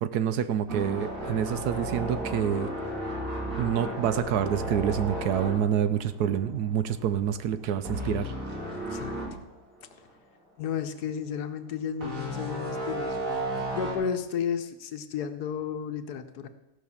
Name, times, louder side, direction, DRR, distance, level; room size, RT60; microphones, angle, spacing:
voice 1, 0.0-2.7 3.6-8.3, right 9 dB, 75° right, 12 dB, 1.2 m, -27 dB
sound 1, 0.7-6.8 7.0-7.3 7.8-9.3 9.8-9.9 12.0-13.9, right 1 dB, 50° right, 3.1 m, -33 dB
voice 2, 8.9-9.2 10.6-13.4 13.7-16.5, left 7 dB, 70° left, 9 dB, 1.4 m, -33 dB
15.0 x 5.7 x 7.1 m, 0.93 s
omnidirectional pair, 1.8 m